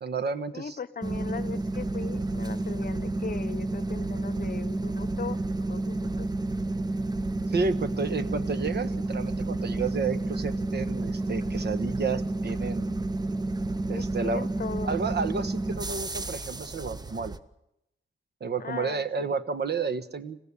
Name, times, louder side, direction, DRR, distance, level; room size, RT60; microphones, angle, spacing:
voice 1, 0.0-0.8 7.5-13.0 13.9-14.5 14.8-17.4 18.4-20.4, right 4 dB, 55° right, 11 dB, 1.3 m, -31 dB
voice 2, 0.5-5.4 5.7-6.3 13.9-15.0 18.6-19.4, left 6 dB, 45° left, 15 dB, 0.8 m, -38 dB
sound 1, 1.0-17.4, right 2 dB, 20° right, 0.7 m, -30 dB
27.0 x 15.5 x 8.4 m, 0.87 s
wide cardioid pair, 155°, 20 cm